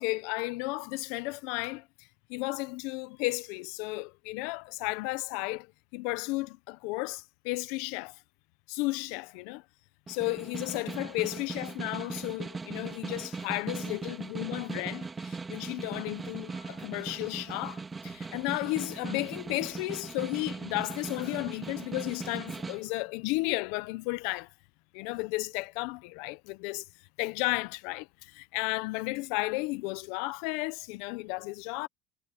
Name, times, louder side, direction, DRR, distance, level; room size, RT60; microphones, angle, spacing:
voice 1, 0.0-1.8 2.3-8.2 8.7-9.6 10.1-24.5 24.9-26.9 27.2-31.9, left 23 dB, 80° left, 0.8 m, -33 dB
Snare drum, 10.1-22.8, right 4 dB, 25° right, 2.1 m, -39 dB
supercardioid pair, 90°, 0 cm